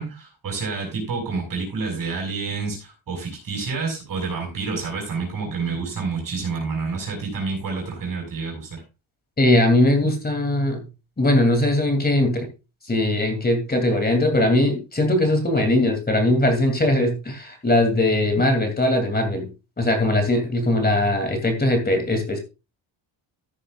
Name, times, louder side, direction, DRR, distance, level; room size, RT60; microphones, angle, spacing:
voice 1, 0.0-8.8, right 4 dB, 45° right, 1 dB, 6.0 m, -28 dB
voice 2, 9.4-10.8 11.2-12.5 12.9-19.5 19.8-22.4, left 1 dB, 20° left, 5 dB, 2.7 m, -20 dB
14.0 x 10.0 x 2.4 m, 0.28 s
cardioid pair, 130°, 48 cm